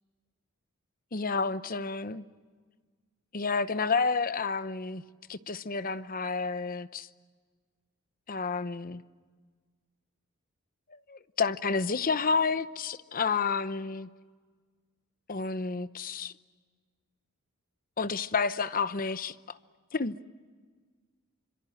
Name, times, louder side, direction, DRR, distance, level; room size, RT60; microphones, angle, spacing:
voice 1, 1.1-2.2 3.3-5.0 5.3-7.1 8.3-9.0 10.9-14.1 15.3-16.3 18.0-19.6 19.9-20.2, left 4 dB, 40° left, 0.8 m, -30 dB
28.0 x 26.0 x 7.8 m
head